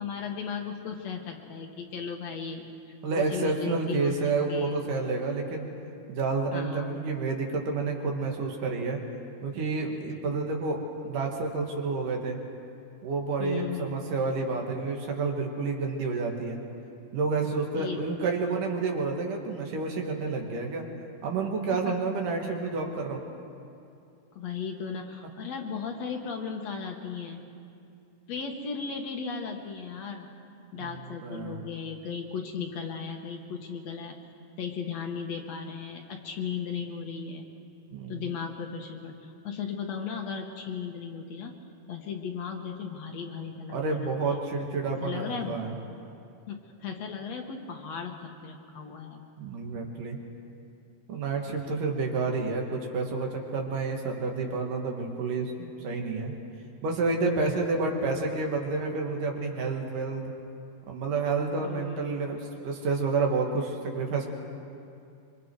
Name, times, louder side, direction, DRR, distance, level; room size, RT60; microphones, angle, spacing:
voice 1, 0.0-2.7 3.2-4.7 6.5-7.0 10.0-10.4 13.4-14.0 17.8-18.2 21.7-22.1 24.4-27.4 28.3-30.3 30.7-34.2 34.6-37.5 38.1-41.6 41.9-44.4 45.0-45.7 46.5-49.3 52.1-52.2 61.6-62.1, left 6 dB, 65° left, 3 dB, 2.1 m, -36 dB
voice 2, 3.0-5.7 6.1-9.0 9.4-10.8 11.0-12.4 13.0-16.6 17.1-20.9 21.2-23.2 30.8-31.7 37.9-38.3 43.7-45.8 49.4-50.2 51.1-56.3 56.8-60.2 60.9-64.3, right 4 dB, 75° right, 1 dB, 3.4 m, -29 dB
25.5 x 24.5 x 4.7 m, 2.5 s
omnidirectional pair, 3.8 m